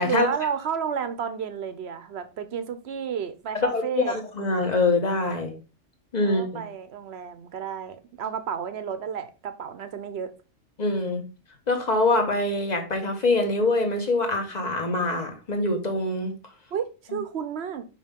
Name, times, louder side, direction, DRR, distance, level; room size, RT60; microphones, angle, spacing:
voice 1, 0.0-4.2 6.2-10.3 16.7-17.8, right 7 dB, 55° right, 1.0 m, -31 dB
voice 2, 3.5-5.5 6.1-6.6 10.8-11.2 11.7-16.3, left 2 dB, 30° left, 1.3 m, -24 dB
5.4 x 5.4 x 3.6 m
omnidirectional pair, 1.4 m